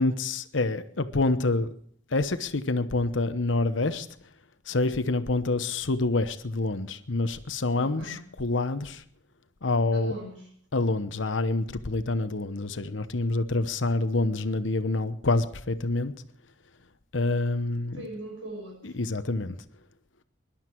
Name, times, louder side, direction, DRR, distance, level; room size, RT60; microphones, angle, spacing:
voice 1, 0.0-1.7 2.1-4.1 4.7-9.0 9.6-10.1 10.7-16.1 17.1-18.0 18.8-19.6, left 2 dB, 75° left, 1.0 m, -27 dB
voice 2, 7.8-8.2 9.9-10.5 17.9-19.0, right 1 dB, 85° right, 6.1 m, -40 dB
21.0 x 11.5 x 4.6 m
head